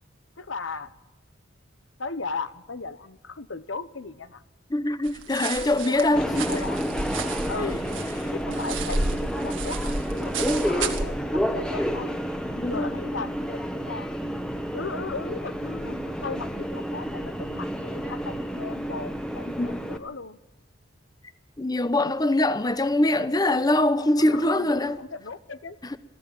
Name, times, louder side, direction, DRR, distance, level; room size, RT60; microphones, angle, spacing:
voice 1, 0.4-0.9 2.0-4.4 5.6-6.9 7.5-7.8 8.3-12.2 12.5-14.2 14.7-20.4 24.2-25.8, left 4 dB, 85° left, 1.1 m, -37 dB
voice 2, 4.7-6.6 12.6-12.9 19.5-19.8 21.6-25.0 25.8-26.0, left 1 dB, 20° left, 0.8 m, -23 dB
sound 1, 5.0-11.1, right 3 dB, 80° right, 2.1 m, -32 dB
Subway metro underground, 6.2-20.0, equal, 5° left, 1.3 m, -30 dB
21.5 x 14.0 x 8.9 m
head